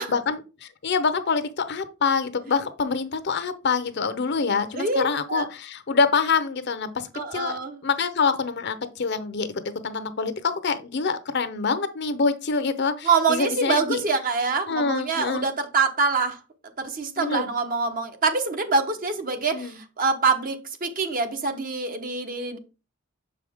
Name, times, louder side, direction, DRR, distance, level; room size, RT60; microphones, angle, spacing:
voice 1, 0.0-9.5 9.8-14.0 14.7-15.5 17.2-17.5 19.5-19.8, left 5 dB, 55° left, 0.7 m, -26 dB
voice 2, 4.7-5.5 7.1-7.8 13.0-16.4 16.8-22.6, right 4 dB, 45° right, 0.9 m, -25 dB
6.6 x 4.8 x 3.5 m
head